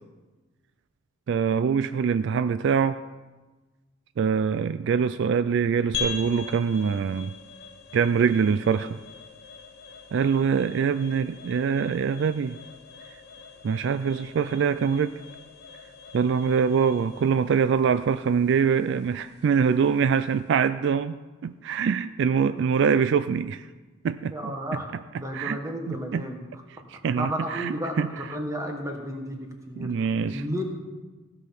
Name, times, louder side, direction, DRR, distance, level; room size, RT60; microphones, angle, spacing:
voice 1, 1.3-3.0 4.2-7.3 7.9-9.0 10.1-12.6 13.6-15.1 16.1-23.6 24.0-24.3 25.3-25.6 25.9-26.2 27.0-28.1 29.8-30.4, right 6 dB, 60° right, 13 dB, 0.3 m, -24 dB
sound 1, 5.9-20.5, left 5 dB, 55° left, 0.8 m, -42 dB
voice 2, 24.3-24.9 25.2-26.4 27.2-29.9 30.3-30.6, equal, 15° right, 2 dB, 1.5 m, -32 dB
16.0 x 5.8 x 5.9 m, 1.2 s
head